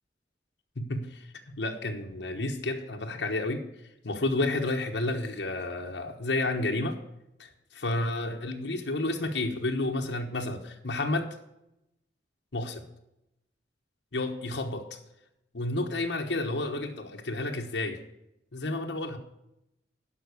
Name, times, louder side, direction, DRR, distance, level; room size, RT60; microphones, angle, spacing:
voice 1, 0.8-3.6 4.0-7.0 7.4-11.4 12.5-12.9 14.1-15.0 15.5-18.0 18.5-19.2, left 2 dB, 75° left, 2 dB, 1.1 m, -31 dB
12.0 x 5.6 x 8.2 m, 0.84 s
head